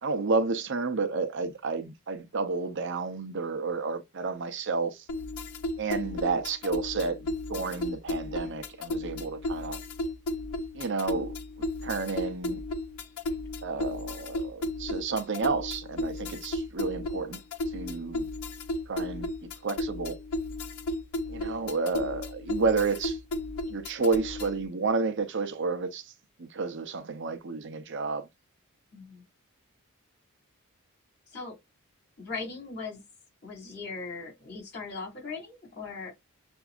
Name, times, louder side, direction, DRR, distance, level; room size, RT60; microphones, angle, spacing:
voice 1, 0.0-5.0 5.8-9.8 10.7-11.3 11.8-12.6 13.6-17.4 17.7-18.3 18.9-19.3 19.6-20.2 21.3-23.2 23.7-26.1 26.4-28.2, right 4 dB, 55° right, 0.6 m, -31 dB
sound 1, 5.1-24.7, left 2 dB, 85° left, 0.6 m, -34 dB
voice 2, 28.9-29.2 31.3-31.5 32.2-33.0 33.4-36.1, left 4 dB, 50° left, 3.1 m, -39 dB
6.8 x 2.6 x 2.4 m
head